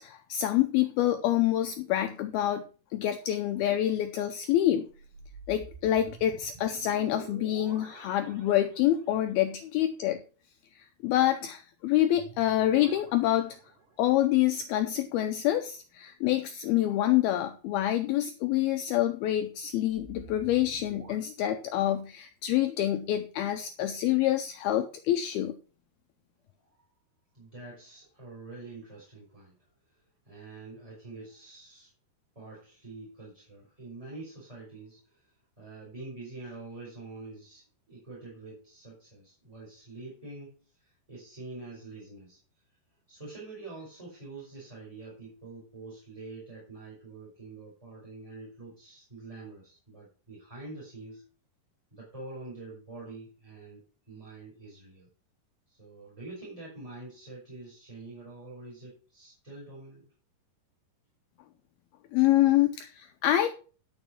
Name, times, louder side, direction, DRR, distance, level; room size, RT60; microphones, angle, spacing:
voice 1, 0.0-2.6 2.9-4.9 5.5-10.2 10.7-13.6 14.0-25.6 62.1-63.5, left 13 dB, 80° left, 8 dB, 2.3 m, -27 dB
sound 1, 4.8-9.3 12.1-14.2 19.9-21.2, right 5 dB, 65° right, 4.8 m, -50 dB
voice 2, 27.3-29.6 30.2-31.9 32.3-35.3 35.6-42.4 43.1-51.2 51.9-55.1 55.7-60.0, right 3 dB, 10° right, -5 dB, 4.6 m, -46 dB
11.0 x 7.0 x 5.8 m, 0.38 s
omnidirectional pair, 5.0 m